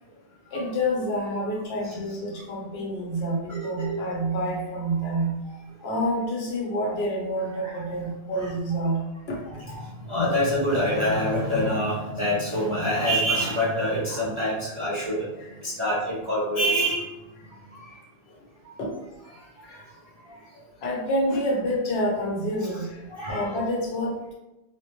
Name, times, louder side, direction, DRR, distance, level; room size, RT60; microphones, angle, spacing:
voice 1, 0.5-5.4 5.8-9.4 15.4-15.5 18.8-18.9 19.6-19.8 20.8-24.3, equal, 70° left, -3 dB, 1.0 m, -28 dB
voice 2, 3.5-4.0 5.1-5.2 7.6-7.8 8.3-8.5 9.4-15.3 15.6-17.1 17.7-18.0 18.6-18.8 19.7-19.8 20.2-20.4 22.6-23.6, equal, 40° right, -8 dB, 0.4 m, -26 dB
2.1 x 2.1 x 2.9 m, 0.97 s
omnidirectional pair, 1.1 m